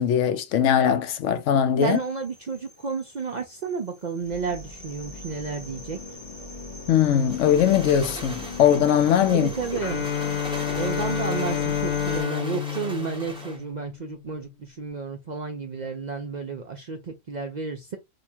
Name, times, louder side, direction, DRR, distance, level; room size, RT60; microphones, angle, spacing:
voice 1, 0.0-2.0 6.9-9.5, left 9 dB, 80° left, 0.9 m, -20 dB
sound 1, 1.8-12.2, left 2 dB, 25° left, 0.9 m, -40 dB
voice 2, 1.8-6.0 9.3-10.1 10.7-18.0, right 5 dB, 55° right, 0.5 m, -31 dB
sound 2, 7.1-13.6, right 1 dB, 5° right, 0.7 m, -39 dB
Bowed string instrument, 9.8-13.9, left 9 dB, 55° left, 0.8 m, -29 dB
2.9 x 2.4 x 4.3 m
omnidirectional pair, 1.3 m